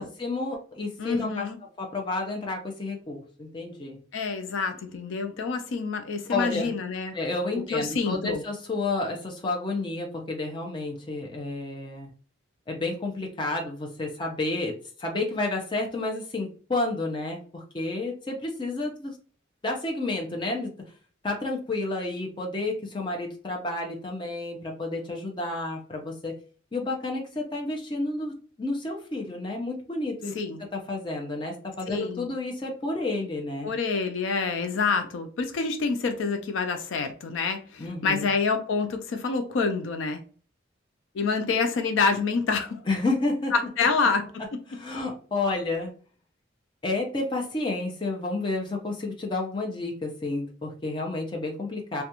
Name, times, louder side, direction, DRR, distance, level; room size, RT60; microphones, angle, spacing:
voice 1, 0.0-1.5 1.8-4.0 6.3-6.7 7.1-12.1 12.7-19.2 19.6-20.7 21.2-26.3 26.7-30.3 30.7-33.7 37.8-38.3 42.9-43.5 44.7-45.9 46.8-52.0, left 2 dB, 25° left, 0.5 m, -30 dB
voice 2, 1.0-1.6 4.1-7.1 7.7-8.4 30.4-30.6 31.9-32.3 33.6-40.2 41.1-42.8 43.5-44.6, left 4 dB, 70° left, 0.4 m, -27 dB
2.4 x 2.2 x 2.8 m
head